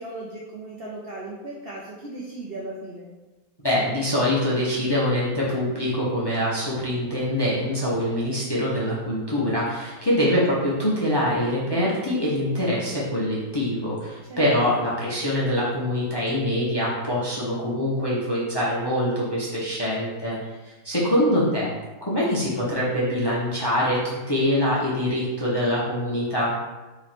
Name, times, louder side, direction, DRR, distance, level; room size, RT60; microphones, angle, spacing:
voice 1, 0.0-3.1 14.3-14.9 21.3-21.7, right 2 dB, 85° right, -4 dB, 0.5 m, -37 dB
voice 2, 3.6-20.4 20.6-21.7 22.0-24.0 24.3-26.5, left 1 dB, 40° left, -7 dB, 0.3 m, -24 dB
3.1 x 3.0 x 4.2 m, 1.1 s
omnidirectional pair, 1.8 m